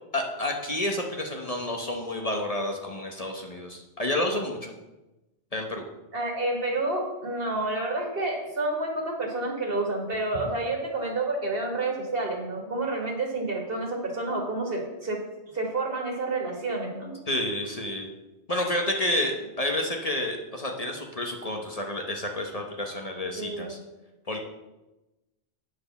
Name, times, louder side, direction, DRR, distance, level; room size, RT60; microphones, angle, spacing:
voice 1, 0.1-4.7 5.5-5.8 17.3-18.1 18.5-23.8 24.3-24.4, left 1 dB, 35° left, 1 dB, 1.0 m, -30 dB
voice 2, 6.1-15.2 15.5-17.1 23.3-23.7, right 2 dB, 60° right, 1 dB, 2.0 m, -29 dB
9.3 x 4.8 x 6.9 m, 1.0 s
omnidirectional pair, 1.1 m